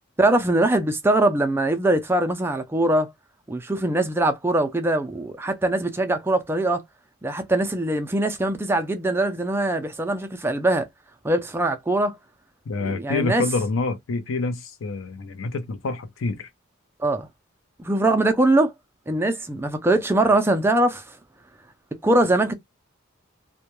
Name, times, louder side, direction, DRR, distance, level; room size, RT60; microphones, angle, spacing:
voice 1, 0.2-3.1 3.5-6.8 7.2-10.9 11.2-12.1 12.8-13.4 17.0-17.3 17.8-18.7 19.1-21.0 22.0-22.5, right 1 dB, 10° right, 0.3 m, -22 dB
voice 2, 12.7-16.5, left 3 dB, 80° left, 0.5 m, -27 dB
2.2 x 2.1 x 2.9 m
head